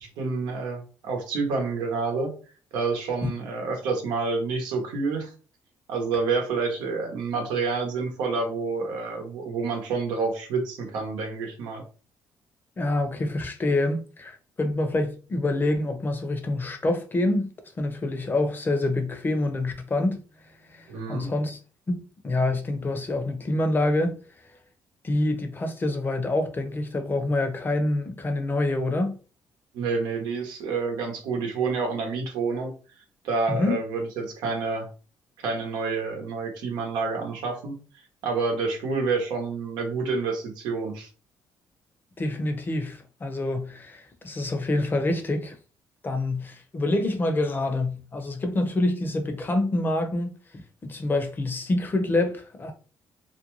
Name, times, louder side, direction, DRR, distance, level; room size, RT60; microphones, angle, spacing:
voice 1, 0.0-2.3 2.7-5.3 5.9-11.8 20.9-21.3 29.7-32.7 33.2-34.9 35.4-37.7 38.2-41.1, right 4 dB, 85° right, 0.8 m, -28 dB
voice 2, 12.8-20.2 20.7-21.6 21.9-24.2 25.0-29.1 33.5-33.8 42.2-45.6 46.0-52.7, left 2 dB, 30° left, 0.7 m, -26 dB
2.6 x 2.1 x 3.0 m
cardioid pair, 85°, 7 cm